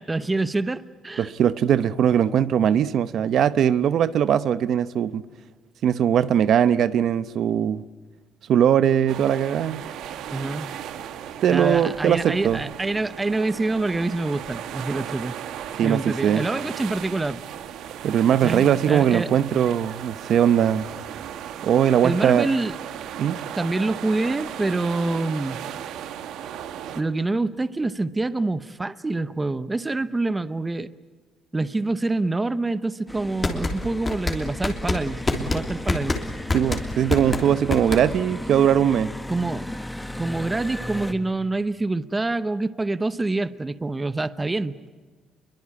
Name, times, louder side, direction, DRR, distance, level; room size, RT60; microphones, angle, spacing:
voice 1, 0.0-1.3 10.3-10.7 11.5-15.4 15.8-17.4 18.4-19.3 22.0-22.7 23.6-25.6 26.9-30.9 31.5-36.2 39.3-39.6 40.2-44.9, right 2 dB, 15° right, 0.8 m, -26 dB
voice 2, 1.2-5.2 5.8-7.8 8.5-9.8 11.4-12.6 15.8-16.4 18.0-20.9 21.6-22.5 23.2-23.4 36.5-39.1, right 9 dB, 60° right, 0.8 m, -20 dB
sound 1, 9.1-27.0, right 10 dB, 85° right, 1.5 m, -36 dB
sound 2, 33.1-41.1, left 1 dB, 5° left, 1.5 m, -35 dB
sound 3, 33.2-38.4, left 3 dB, 20° left, 3.2 m, -26 dB
28.0 x 23.0 x 8.6 m
cardioid pair, 150°, 0 cm